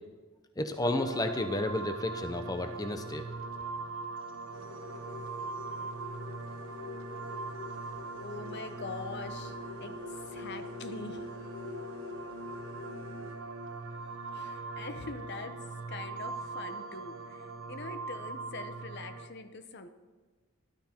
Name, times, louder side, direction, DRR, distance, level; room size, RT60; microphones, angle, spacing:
voice 1, 0.6-3.2, left 1 dB, 15° left, 7 dB, 0.7 m, -32 dB
sound 1, 0.8-19.3, right 3 dB, 65° right, 1.0 m, -41 dB
sound 2, 4.5-13.3, left 5 dB, 75° left, 1.9 m, -47 dB
voice 2, 8.2-11.3 14.3-15.6 15.9-19.9, left 3 dB, 55° left, 9 dB, 0.8 m, -43 dB
13.5 x 12.0 x 4.4 m, 1.4 s
head